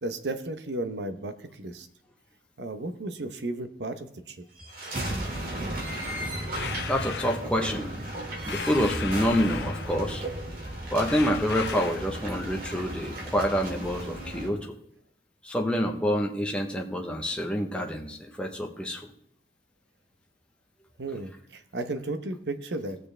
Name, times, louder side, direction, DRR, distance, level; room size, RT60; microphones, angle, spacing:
voice 1, 0.0-1.9 2.6-4.4 21.0-23.0, right 2 dB, 75° right, 9 dB, 0.9 m, -34 dB
sound 1, 4.6-14.5, right 1 dB, 50° right, 2.6 m, -35 dB
sound 2, 6.6-7.4 8.5-10.1 11.1-12.1, left 7 dB, 70° left, 0.5 m, -36 dB
voice 2, 6.9-8.1 8.5-10.2 10.9-14.6 15.4-19.1, equal, 5° left, 1 dB, 0.9 m, -27 dB
18.5 x 6.6 x 3.4 m, 0.71 s
head